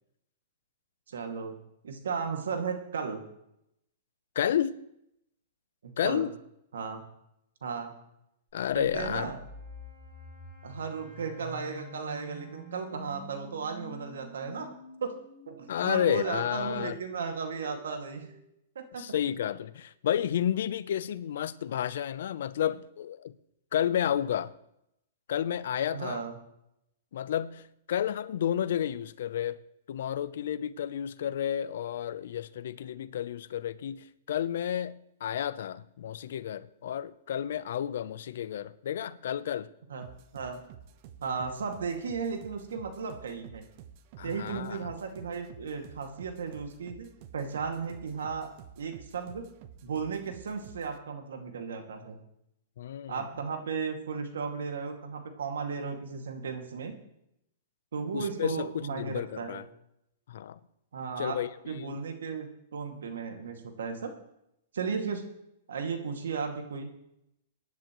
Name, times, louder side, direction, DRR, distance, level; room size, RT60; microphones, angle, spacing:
voice 1, 1.1-1.6 1.8-3.2 5.8-6.3 6.7-7.0 7.6-7.9 8.7-9.4 10.6-14.7 15.0-15.1 15.5-18.3 18.8-19.1 25.9-26.4 39.9-40.6 41.2-43.7 44.2-49.5 49.8-52.2 53.1-56.9 57.9-59.6 60.9-61.4 61.7-64.1 64.7-65.2 65.7-66.9, right 5 dB, 85° right, 2.1 m, -35 dB
voice 2, 4.4-4.7 6.0-6.3 8.5-9.3 15.7-17.0 19.0-23.3 23.7-24.5 25.3-26.2 27.1-29.6 29.9-39.7 44.2-44.9 52.8-53.3 58.1-59.6 60.3-60.6 61.2-62.0, left 10 dB, 70° left, 0.6 m, -31 dB
sound 1, 8.7-18.5, equal, 5° right, 1.8 m, -49 dB
Wind instrument woodwind instrument, 9.0-14.7, equal, 30° right, 5.9 m, -59 dB
sound 2, 40.0-51.0, right 8 dB, 45° right, 0.9 m, -51 dB
23.0 x 10.5 x 3.1 m
hypercardioid pair, 140°, 0 cm